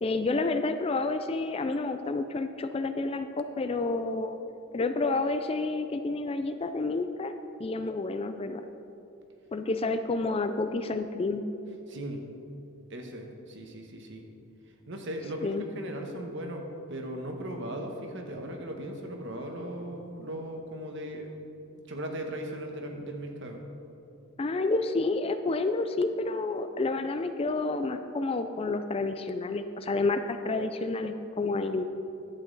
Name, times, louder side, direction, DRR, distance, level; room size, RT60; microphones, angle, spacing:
voice 1, 0.0-4.4 4.7-7.3 7.6-8.6 9.5-11.4 15.4-15.6 24.4-31.8, left 3 dB, 25° left, 9 dB, 0.4 m, -29 dB
voice 2, 11.9-12.2 12.9-14.2 14.9-21.4 21.9-23.6 31.6-31.7, right 1 dB, 60° right, 3 dB, 1.2 m, -38 dB
11.5 x 8.5 x 4.0 m, 2.7 s
head